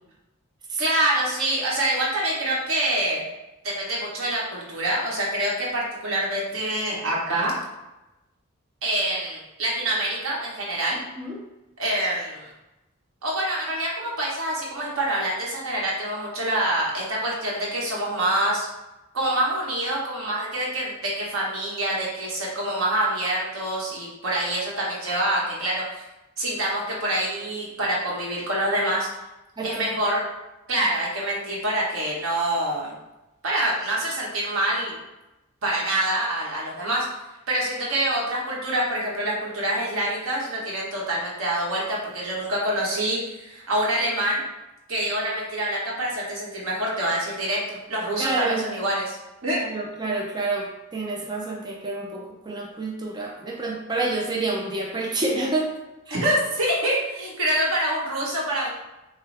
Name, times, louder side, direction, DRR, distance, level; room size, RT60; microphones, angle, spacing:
voice 1, 0.8-3.2 3.6-7.5 8.8-11.0 11.8-12.5 13.2-18.7 19.1-26.0 26.4-29.1 29.6-30.2 30.7-33.0 33.4-35.0 35.6-37.0 37.5-44.4 44.9-49.2 49.4-49.6 56.1-58.7, right 1 dB, 85° right, -4 dB, 1.4 m, -26 dB
voice 2, 29.6-29.9 48.2-48.7 49.6-55.7 56.1-56.2, right 2 dB, 20° right, -1 dB, 0.5 m, -28 dB
6.7 x 2.3 x 3.4 m, 0.98 s
head